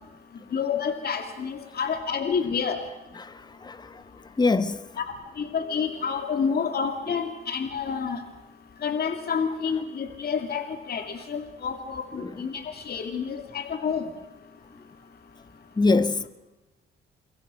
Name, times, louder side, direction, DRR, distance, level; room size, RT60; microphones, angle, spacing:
voice 1, 0.5-2.8 5.0-8.2 8.8-14.0, left 6 dB, 50° left, 2.8 m, -29 dB
voice 2, 4.4-4.8 12.2-12.3 15.8-16.3, left 3 dB, 20° left, 1.3 m, -23 dB
28.5 x 24.5 x 6.4 m
cardioid pair, 90°, 20 cm